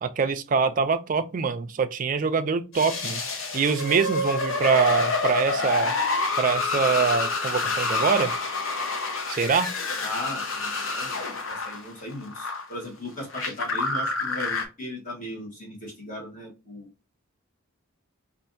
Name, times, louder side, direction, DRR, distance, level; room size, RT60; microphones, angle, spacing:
voice 1, 0.0-3.2 3.5-5.9 6.4-8.3 9.3-9.7, right 5 dB, 35° right, 0.3 m, -24 dB
sound 1, 2.7-12.6 13.2-14.7, left 3 dB, 65° left, 0.8 m, -28 dB
voice 2, 10.0-11.1 11.5-16.9, left 1 dB, 35° left, 1.3 m, -37 dB
4.4 x 2.4 x 2.6 m
head